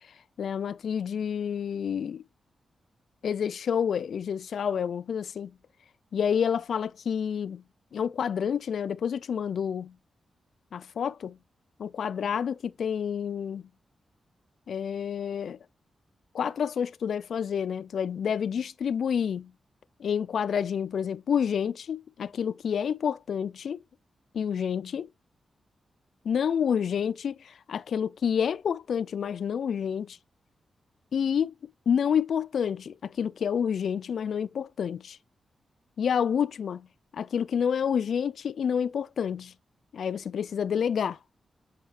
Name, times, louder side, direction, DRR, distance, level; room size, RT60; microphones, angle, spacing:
voice 1, 0.4-2.2 3.2-5.5 6.1-7.6 7.9-9.9 10.7-11.4 11.8-13.7 14.7-15.6 16.3-19.5 20.0-23.8 24.3-25.1 26.2-30.2 31.1-31.5 31.9-35.2 36.0-36.9 37.1-39.5 39.9-41.2, left 7 dB, 70° left, 0.3 m, -29 dB
7.7 x 5.4 x 3.1 m
wide cardioid pair, 110°, 0 cm